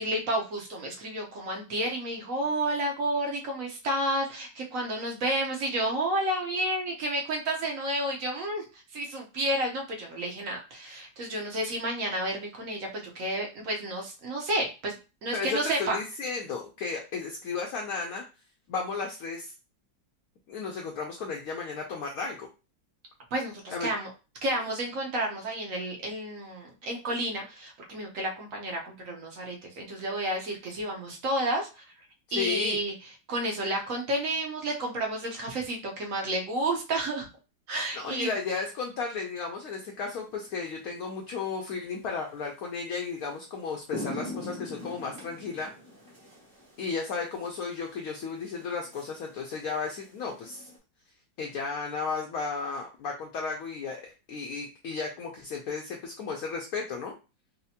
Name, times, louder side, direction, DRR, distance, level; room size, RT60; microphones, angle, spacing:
voice 1, 0.0-8.6 8.9-15.0 15.2-16.0 23.3-24.1 24.4-31.8 32.3-32.9 33.3-37.3 37.7-38.3, right 1 dB, 60° right, 0 dB, 0.9 m, -31 dB
voice 2, 15.3-18.2 18.7-19.5 20.5-22.5 23.7-23.9 32.4-32.8 37.9-45.7 46.8-50.7 51.4-57.1, left 5 dB, 70° left, 1 dB, 0.9 m, -34 dB
sound 1, 40.2-40.5 42.6-42.7 43.2-43.3 43.7-50.8, left 1 dB, 20° right, 0.9 m, -43 dB
4.1 x 2.1 x 2.7 m, 0.31 s
omnidirectional pair, 2.0 m